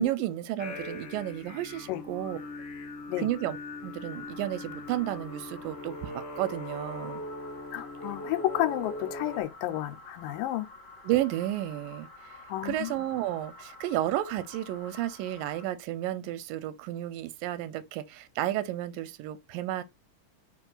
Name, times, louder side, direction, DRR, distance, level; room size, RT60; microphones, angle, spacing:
voice 1, 0.0-2.4 3.2-3.6 3.8-7.2 11.0-12.4 12.6-19.8, right 14 dB, 85° right, 2.3 m, -32 dB
sound 1, 0.6-9.4, left 2 dB, 55° left, 2.0 m, -40 dB
sound 2, 4.1-15.6, left 2 dB, 30° left, 1.0 m, -50 dB
voice 2, 7.7-10.7 12.5-12.9, left 14 dB, 85° left, 2.2 m, -31 dB
5.3 x 2.4 x 3.8 m
omnidirectional pair, 3.8 m